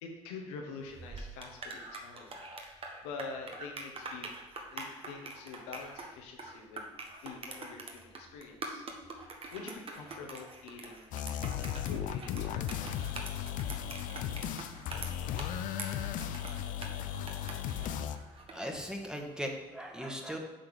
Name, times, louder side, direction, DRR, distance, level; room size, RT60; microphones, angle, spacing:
voice 1, 0.0-2.4 2.7-4.3 4.7-6.9 7.2-8.8 9.1-11.2 11.7-13.5, left 4 dB, 90° left, 1 dB, 1.2 m, -46 dB
sound 1, 0.9-18.6, right 3 dB, 40° right, 1.3 m, -45 dB
sound 2, 11.1-18.2, left 10 dB, 70° left, 0.5 m, -36 dB
voice 2, 17.9-18.2 18.5-20.4, equal, 5° right, 2 dB, 1.4 m, -39 dB
7.8 x 3.9 x 6.5 m, 1.0 s
supercardioid pair, 75°, 14 cm